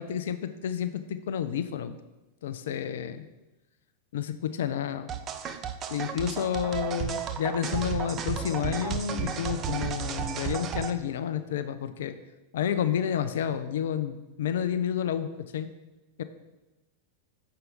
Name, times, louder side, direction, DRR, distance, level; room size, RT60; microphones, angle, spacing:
voice 1, 0.0-1.9 2.4-3.3 4.1-5.1 5.9-12.2 12.5-15.3 15.5-15.7 16.2-16.3, left 9 dB, 60° left, 11 dB, 0.4 m, -30 dB
sound 1, 5.1-10.9, right 8 dB, 30° right, 0.5 m, -33 dB
6.7 x 4.5 x 5.2 m, 1.1 s
figure-of-eight pair, 90°, 0 cm